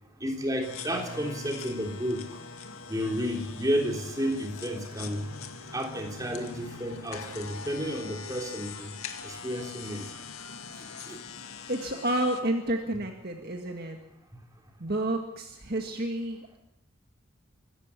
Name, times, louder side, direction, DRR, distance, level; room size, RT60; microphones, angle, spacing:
voice 1, 0.2-2.2 2.9-5.2 5.7-8.9 9.2-10.0 11.1-11.2, equal, 15° right, 1 dB, 3.4 m, -31 dB
sound 1, 0.6-12.4, left 4 dB, 85° left, 2.1 m, -42 dB
voice 2, 11.7-14.0 14.8-16.6, right 1 dB, 45° right, 3 dB, 1.9 m, -30 dB
25.0 x 13.5 x 8.4 m, 0.89 s
head